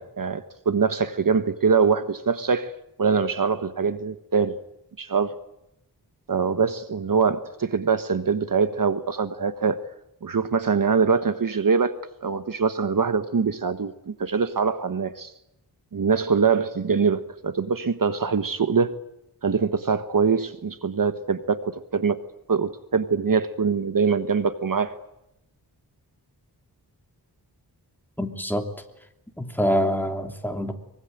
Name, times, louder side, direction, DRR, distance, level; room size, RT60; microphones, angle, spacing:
voice 1, 0.0-2.7 3.0-4.6 5.0-5.3 6.3-9.8 10.2-15.3 15.9-18.9 19.4-22.2 22.5-24.9, right 5 dB, 55° right, 1.3 m, -23 dB
voice 2, 28.2-28.7 29.4-30.7, equal, 5° left, 3.2 m, -25 dB
24.0 x 24.0 x 9.0 m
wide cardioid pair, 125°, 40 cm